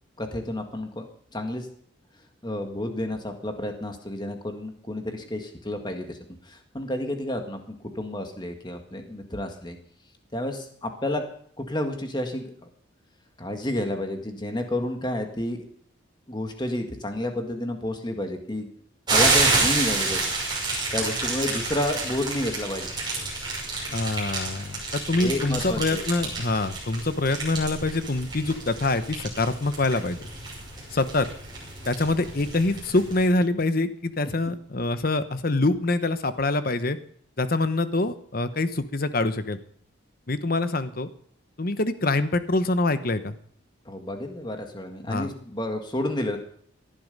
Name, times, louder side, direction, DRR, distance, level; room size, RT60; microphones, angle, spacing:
voice 1, 0.2-1.1 1.3-1.7 2.4-6.2 6.4-9.8 10.3-11.3 11.6-12.5 13.4-15.6 16.3-18.7 19.1-20.2 20.9-22.9 25.2-26.0 34.2-34.3 43.9-46.4, left 1 dB, 20° left, 5 dB, 1.8 m, -30 dB
sound 1, 19.1-33.3, right 3 dB, 20° right, 5.9 m, -29 dB
voice 2, 23.9-30.2 30.9-31.3 31.9-37.0 37.4-39.6 40.3-41.1 41.6-43.4 45.1-45.3, left 2 dB, 45° left, 12 dB, 0.9 m, -25 dB
18.0 x 11.5 x 5.4 m, 0.62 s
head